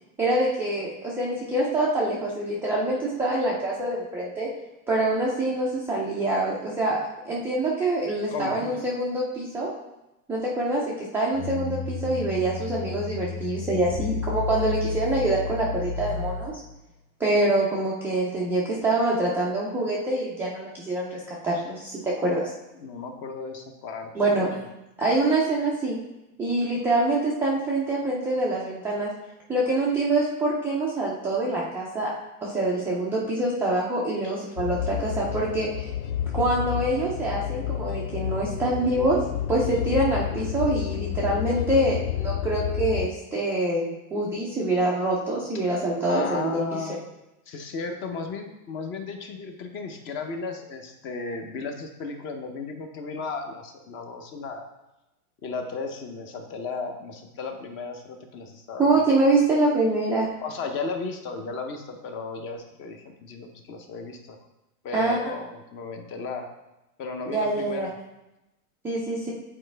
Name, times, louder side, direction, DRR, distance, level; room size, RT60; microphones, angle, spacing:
voice 1, 0.2-4.5 4.9-7.0 7.3-9.7 10.3-10.8 11.1-16.5 17.2-22.5 24.1-24.5 25.0-26.0 26.4-29.1 29.5-32.1 32.4-35.9 36.3-39.2 39.5-46.8 58.8-60.3 64.9-65.2 67.3-67.9 68.8-69.3, right 2 dB, 5° right, -7 dB, 0.4 m, -25 dB
voice 2, 8.3-8.6 22.8-24.6 45.5-45.7 46.1-47.0 47.5-54.7 55.4-59.0 60.4-64.4 64.8-66.5 67.0-67.9, left 4 dB, 25° left, 5 dB, 0.7 m, -35 dB
sound 1, 11.3-16.8, left 6 dB, 55° left, 2.1 m, -32 dB
sound 2, 34.6-43.1, left 12 dB, 85° left, 0.6 m, -30 dB
8.8 x 4.3 x 3.3 m, 0.94 s
supercardioid pair, 145°, 44 cm